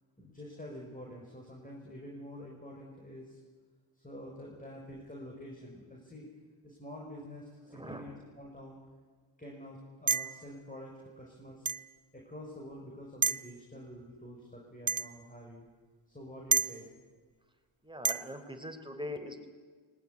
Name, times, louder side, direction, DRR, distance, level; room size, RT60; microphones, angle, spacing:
voice 1, 0.2-3.4 4.0-6.3 6.6-8.8 9.4-11.7 12.1-15.7 16.1-16.9, equal, 15° left, -1 dB, 6.2 m, -47 dB
voice 2, 7.7-8.0 17.8-19.5, left 1 dB, 10° right, 5 dB, 4.1 m, -41 dB
sound 1, 10.1-10.4 11.7-11.9 13.2-13.5 14.9-15.1 16.5-16.7 18.0-18.2, right 5 dB, 35° right, 0.8 m, -29 dB
20.5 x 19.0 x 9.7 m, 1.5 s
cardioid pair, 55°, 50 cm